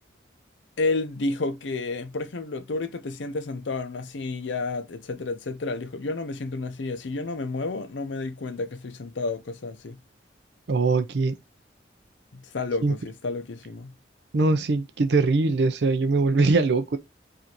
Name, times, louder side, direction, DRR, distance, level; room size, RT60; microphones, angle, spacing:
voice 1, 0.8-10.0 12.3-13.9, left 3 dB, 85° left, 0.6 m, -31 dB
voice 2, 10.7-11.4 12.8-12.9 14.3-17.0, right 3 dB, 65° right, 0.5 m, -22 dB
4.8 x 2.6 x 2.9 m
head